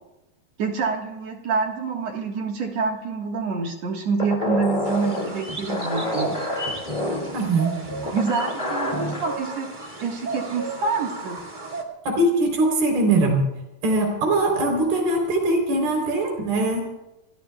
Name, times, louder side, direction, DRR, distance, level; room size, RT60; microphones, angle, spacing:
voice 1, 0.6-6.4 8.1-9.7 10.0-11.4, right 5 dB, 55° right, 1 dB, 2.2 m, -27 dB
sound 1, 4.2-9.3, left 2 dB, 20° left, 1.3 m, -28 dB
sound 2, 4.8-11.8, right 2 dB, 30° right, 0.9 m, -34 dB
voice 2, 7.3-7.7 12.1-13.4 13.8-16.8, right 2 dB, 75° right, 1 dB, 5.5 m, -21 dB
28.5 x 19.5 x 2.3 m, 0.96 s
omnidirectional pair, 4.4 m